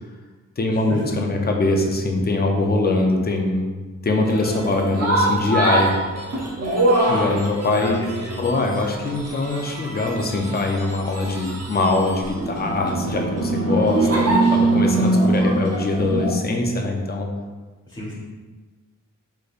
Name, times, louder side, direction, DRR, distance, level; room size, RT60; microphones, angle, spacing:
voice 1, 0.6-5.9 7.1-8.0 8.4-17.3, left 2 dB, 30° left, 2 dB, 0.5 m, -22 dB
sound 1, 4.2-16.3, right 2 dB, 50° right, 0.8 m, -23 dB
voice 2, 7.8-8.4 17.9-18.1, equal, 15° left, -7 dB, 1.4 m, -34 dB
4.0 x 3.2 x 2.5 m, 1.3 s
wide cardioid pair, 85°, 32 cm